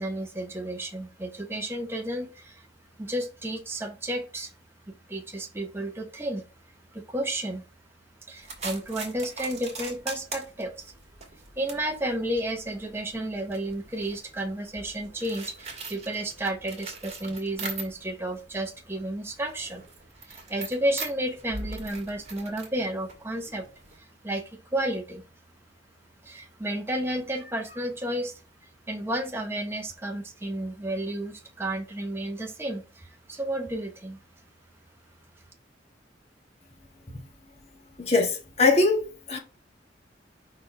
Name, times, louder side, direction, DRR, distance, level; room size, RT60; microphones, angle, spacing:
voice 1, 0.0-2.7 3.0-4.5 5.1-6.4 6.9-7.6 8.3-10.9 11.6-19.8 20.2-23.6 24.0-24.4 24.7-25.2 26.2-28.4 28.9-34.2, right 1 dB, 15° right, 0.9 m, -32 dB
sound 1, 8.4-18.2 18.6-24.0, right 3 dB, 40° right, 1.9 m, -41 dB
voice 2, 38.0-39.4, left 3 dB, 35° left, 1.5 m, -22 dB
5.4 x 4.3 x 4.7 m
head